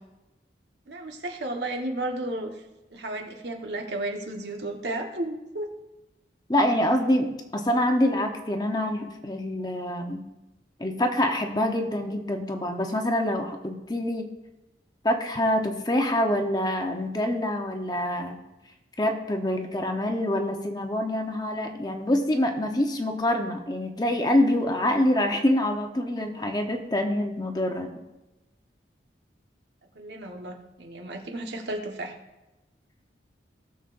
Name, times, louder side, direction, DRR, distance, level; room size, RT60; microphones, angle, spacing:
voice 1, 0.9-2.6 2.9-5.7 29.9-32.1, right 1 dB, 75° right, 2 dB, 1.4 m, -33 dB
voice 2, 6.5-10.2 10.8-14.3 15.0-18.4 19.0-27.9, left 1 dB, 25° left, 4 dB, 0.9 m, -26 dB
18.0 x 7.0 x 2.6 m, 1.0 s
head